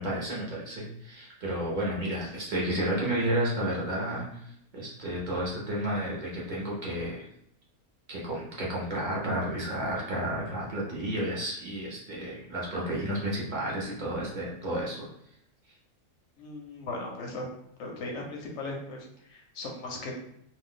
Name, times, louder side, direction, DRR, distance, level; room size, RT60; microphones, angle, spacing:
voice 1, 0.0-7.3 8.1-15.1, right 1 dB, 40° right, -5 dB, 0.7 m, -31 dB
voice 2, 16.4-17.5 17.8-20.2, left 2 dB, 65° left, 0 dB, 0.7 m, -38 dB
2.5 x 2.2 x 3.6 m, 0.74 s
omnidirectional pair, 1.6 m